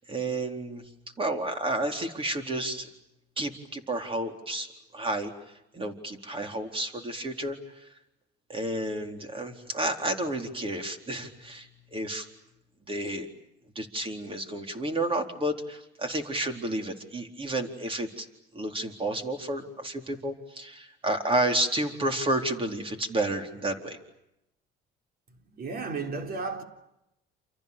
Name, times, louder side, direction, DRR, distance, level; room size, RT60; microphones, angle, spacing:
voice 1, 0.1-0.9 1.2-2.9 3.4-4.7 4.9-5.3 5.7-7.6 8.5-12.3 12.9-13.3 13.8-18.3 18.5-24.0, right 1 dB, 25° right, 4.1 m, -31 dB
voice 2, 25.5-26.6, right 4 dB, 50° right, 3.8 m, -33 dB
29.5 x 29.0 x 7.0 m
cardioid pair, 120°, 20 cm